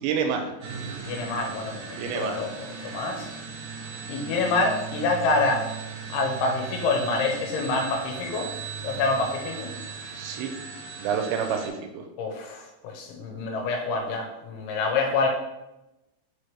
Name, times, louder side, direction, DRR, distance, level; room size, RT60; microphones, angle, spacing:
voice 1, 0.0-0.5 2.0-2.4 10.1-10.5 11.0-12.0, right 6 dB, 85° right, 5 dB, 2.9 m, -28 dB
sound 1, 0.6-11.7, right 6 dB, 65° right, 1.6 m, -38 dB
voice 2, 1.1-2.5 2.8-3.3 4.1-5.7 6.1-8.5 8.8-9.7 12.2-15.3, left 3 dB, 90° left, 1 dB, 3.4 m, -26 dB
6.7 x 4.7 x 3.4 m, 0.95 s
omnidirectional pair, 5.2 m